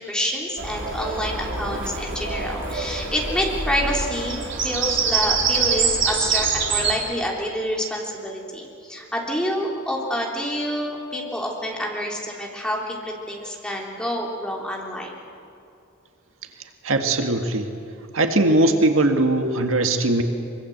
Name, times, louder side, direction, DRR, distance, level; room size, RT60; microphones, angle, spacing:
voice 1, 0.0-15.1, equal, 5° left, -2 dB, 3.5 m, -28 dB
Bird vocalization bird call bird song, 0.6-6.9, right 5 dB, 60° right, 4.0 m, -25 dB
voice 2, 16.8-17.7 18.1-20.2, right 2 dB, 80° right, 5 dB, 1.8 m, -20 dB
24.0 x 23.5 x 8.0 m, 2.6 s
head